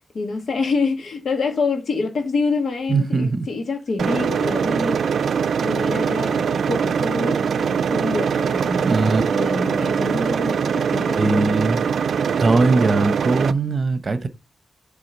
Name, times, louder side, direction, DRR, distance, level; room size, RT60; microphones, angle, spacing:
voice 1, 0.1-5.0 5.6-8.9 9.3-11.5, left 3 dB, 75° left, 1.8 m, -26 dB
voice 2, 2.9-3.4 8.8-9.2 11.2-11.8 12.4-14.3, right 3 dB, 40° right, 0.8 m, -20 dB
sound 1, 4.0-13.5, right 7 dB, 90° right, 0.4 m, -22 dB
7.6 x 3.7 x 5.3 m
wide cardioid pair, 120°, 0 cm